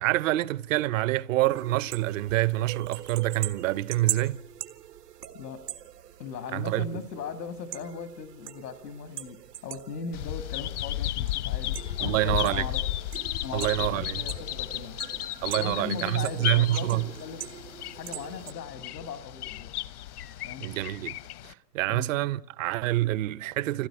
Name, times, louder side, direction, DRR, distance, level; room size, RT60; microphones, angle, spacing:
voice 1, 0.0-4.4 6.5-6.9 12.0-12.6 13.5-14.2 15.4-17.1 20.6-21.2 21.4-23.9, right 16 dB, 55° right, 0.7 m, -27 dB
sound 1, 1.5-18.5, right 11 dB, 90° right, 1.6 m, -42 dB
voice 2, 6.2-9.4 9.6-12.8 13.4-15.0 15.6-17.4 17.9-19.8 20.4-20.7 21.9-22.1, left 6 dB, 90° left, 1.9 m, -38 dB
Bird vocalization bird call bird song, 10.1-21.5, left 14 dB, 70° left, 1.0 m, -34 dB
26.0 x 16.0 x 9.7 m
hypercardioid pair, 125°, 47 cm